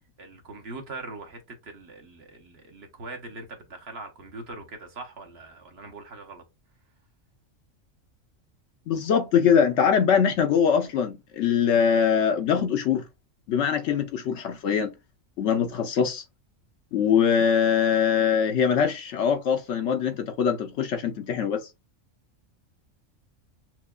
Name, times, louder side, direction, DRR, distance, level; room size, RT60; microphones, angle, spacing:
voice 1, 0.2-6.4, right 3 dB, 55° right, 1.1 m, -41 dB
voice 2, 8.9-13.0 13.5-14.9 15.4-16.2 16.9-21.7, left 7 dB, 70° left, 0.8 m, -23 dB
5.9 x 2.2 x 2.3 m
omnidirectional pair, 1.4 m